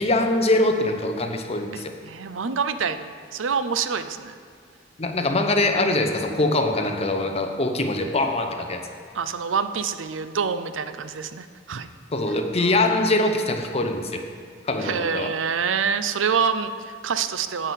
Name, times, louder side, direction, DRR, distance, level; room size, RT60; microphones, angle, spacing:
voice 1, 0.0-1.9 5.0-8.8 12.1-14.2 14.6-15.3, left 2 dB, 35° left, 5 dB, 0.8 m, -23 dB
voice 2, 1.7-4.4 9.1-11.9 12.6-12.9 14.8-17.7, right 6 dB, 90° right, 11 dB, 0.6 m, -26 dB
9.9 x 5.4 x 8.4 m, 2.1 s
head